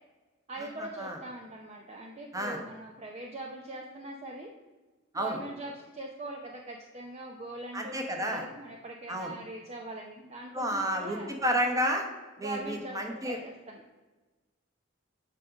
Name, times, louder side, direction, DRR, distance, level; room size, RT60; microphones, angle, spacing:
voice 1, 0.5-4.5 5.1-11.3 12.4-13.8, right 1 dB, 35° right, 1 dB, 0.6 m, -42 dB
voice 2, 7.7-8.4 9.1-9.3 10.5-12.1 12.4-13.4, equal, 15° right, 3 dB, 1.1 m, -30 dB
7.5 x 5.1 x 5.0 m, 1.2 s
head